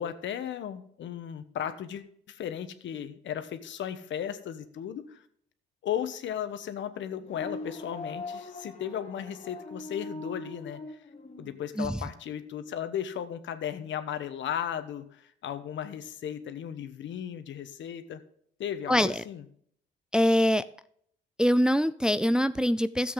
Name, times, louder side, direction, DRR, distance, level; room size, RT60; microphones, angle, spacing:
voice 1, 0.0-5.2 5.8-11.0 11.4-18.2 18.6-19.4, left 9 dB, 70° left, 10 dB, 1.1 m, -36 dB
sound 1, 7.2-11.6, left 2 dB, 35° left, 1.9 m, -41 dB
voice 2, 18.9-19.2 20.1-20.6 21.4-23.1, equal, 5° right, 13 dB, 0.4 m, -24 dB
13.0 x 7.9 x 3.8 m, 0.65 s
cardioid pair, 90°, 20 cm